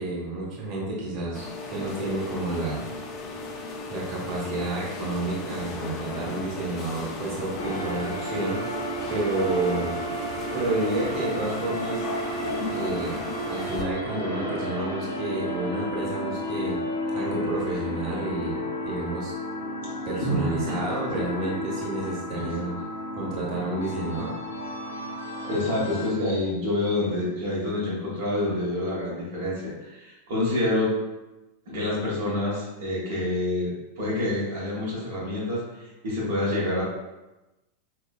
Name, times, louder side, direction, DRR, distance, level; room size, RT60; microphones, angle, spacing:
voice 1, 0.0-2.9 3.9-8.6 9.1-10.0 10.5-12.0 12.7-13.2 13.5-16.8 17.1-19.3 20.0-22.7 23.1-24.3, right 2 dB, 35° right, -5 dB, 1.2 m, -30 dB
sound 1, 1.3-13.8, left 3 dB, 30° left, 0.5 m, -36 dB
sound 2, 7.6-26.1, equal, 70° left, 0.6 m, -33 dB
voice 2, 22.4-22.7 25.4-30.9 31.7-33.7 34.0-36.8, left 1 dB, 55° right, -5 dB, 1.2 m, -27 dB
4.9 x 2.3 x 2.3 m, 1.0 s
figure-of-eight pair, 90°, 0 cm